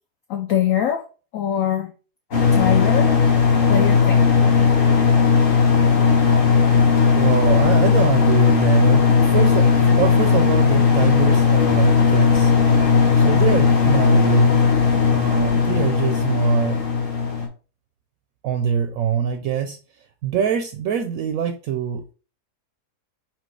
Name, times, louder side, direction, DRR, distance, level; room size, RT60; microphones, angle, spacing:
voice 1, 0.3-1.0 1.3-1.9 2.3-3.1 3.7-4.2, left 10 dB, 70° left, 0.8 m, -23 dB
sound 1, 2.3-17.5, left 5 dB, 40° left, 1.0 m, -16 dB
voice 2, 7.1-12.5 13.2-14.6 15.1-16.8 18.4-19.8 20.2-22.1, right 7 dB, 70° right, 0.9 m, -24 dB
4.5 x 2.4 x 4.6 m
omnidirectional pair, 1.7 m